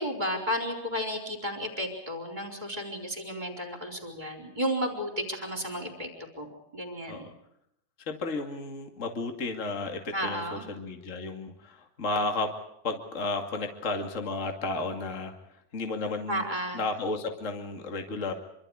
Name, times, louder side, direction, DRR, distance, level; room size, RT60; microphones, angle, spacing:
voice 1, 0.0-6.1 6.4-7.2 10.1-10.7 16.3-16.8, equal, 10° right, 2 dB, 3.9 m, -33 dB
voice 2, 8.1-12.5 12.8-15.3 15.7-16.4 16.7-18.3, left 3 dB, 40° left, 3 dB, 1.0 m, -33 dB
26.5 x 25.5 x 4.9 m, 0.77 s
omnidirectional pair, 5.4 m